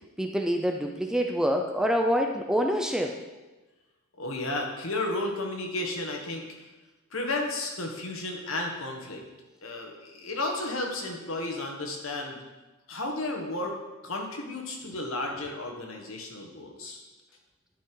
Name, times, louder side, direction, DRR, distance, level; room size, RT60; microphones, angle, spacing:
voice 1, 0.2-3.2, equal, 5° right, 3 dB, 0.5 m, -26 dB
voice 2, 4.2-6.5 7.1-9.2 9.6-12.4 12.9-13.8 14.0-17.0, left 2 dB, 65° left, 1 dB, 1.6 m, -33 dB
11.5 x 5.8 x 4.7 m, 1.1 s
head